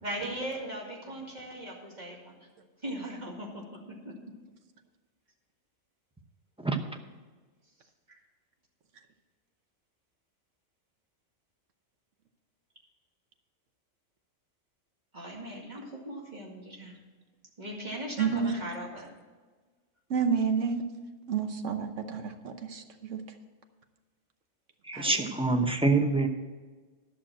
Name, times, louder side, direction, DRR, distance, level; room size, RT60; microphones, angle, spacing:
voice 1, 0.0-2.5 2.8-4.2 8.1-8.2 15.1-17.0 17.6-19.1 21.2-21.4 24.9-25.3, right 1 dB, 35° right, -2 dB, 2.3 m, -39 dB
voice 2, 18.2-18.6 20.1-20.8 21.3-22.8 23.1-23.2, right 6 dB, 85° right, 7 dB, 1.3 m, -29 dB
voice 3, 24.8-26.3, right 3 dB, 5° right, 4 dB, 0.7 m, -25 dB
11.5 x 6.2 x 7.5 m, 1.4 s
omnidirectional pair, 1.2 m